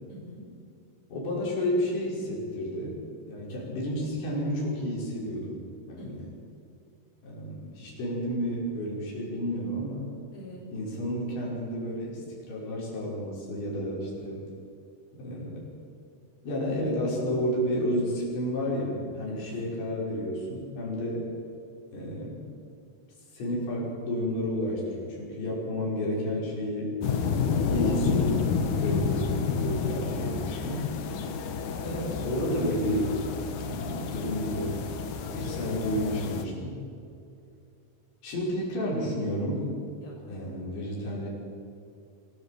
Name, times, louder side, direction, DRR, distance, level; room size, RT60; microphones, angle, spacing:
voice 1, 0.1-0.5 6.0-6.3 10.3-10.7 19.3-19.5 31.1-31.5 40.0-40.6, equal, 30° left, -1 dB, 5.6 m, -45 dB
voice 2, 1.1-3.0 3.3-5.6 5.9-6.2 7.2-10.1 10.7-14.4 15.2-15.7 16.4-21.3 21.9-22.5 23.3-27.0 27.7-28.5 28.8-30.9 31.8-33.2 33.7-34.8 35.3-36.8 38.2-39.7 40.3-41.3, equal, 85° left, -5 dB, 8.2 m, -31 dB
sound 1, 27.0-36.5, left 6 dB, 60° left, 2.3 m, -30 dB
25.5 x 15.5 x 8.8 m, 2.6 s
omnidirectional pair, 5.0 m